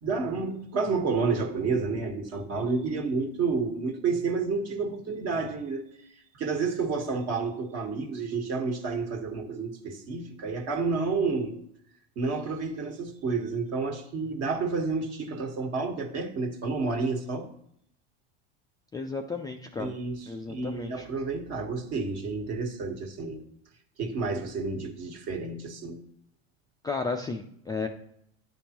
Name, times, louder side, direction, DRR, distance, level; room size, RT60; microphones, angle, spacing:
voice 1, 0.0-5.8 6.3-11.5 12.1-17.5 19.8-23.4 24.0-26.0, right 4 dB, 50° right, 3 dB, 1.4 m, -30 dB
voice 2, 18.9-19.9 20.3-21.0 26.8-27.9, left 4 dB, 10° left, 3 dB, 0.3 m, -33 dB
10.0 x 3.6 x 2.9 m, 0.71 s
supercardioid pair, 100°, 33 cm